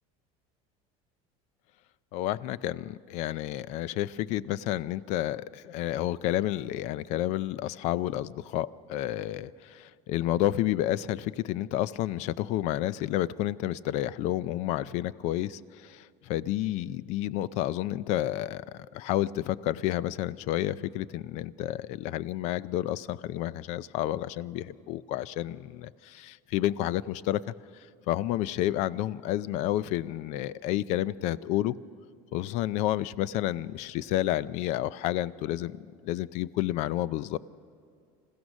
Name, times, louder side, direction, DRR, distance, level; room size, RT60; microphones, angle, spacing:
voice 1, 2.1-27.5 28.1-31.7 32.3-37.4, left 14 dB, 45° left, 19 dB, 0.4 m, -30 dB
27.0 x 16.0 x 6.3 m, 2.4 s
cardioid pair, 175°, 16 cm